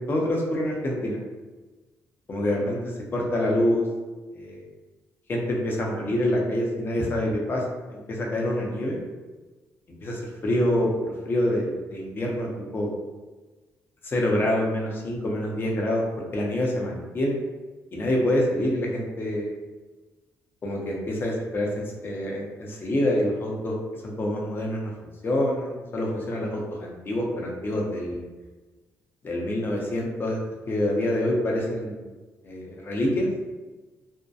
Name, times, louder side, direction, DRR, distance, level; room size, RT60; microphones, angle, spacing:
voice 1, 0.1-1.2 2.3-3.8 4.3-4.6 5.3-7.6 8.1-9.0 10.0-12.9 14.0-16.1 16.3-17.4 17.9-19.5 20.6-23.7 24.0-24.9 25.2-28.2 29.2-30.4 30.7-32.1 32.4-33.3, left 1 dB, 40° left, -1 dB, 0.6 m, -26 dB
2.7 x 2.1 x 2.3 m, 1.2 s
cardioid pair, 90°, 6 cm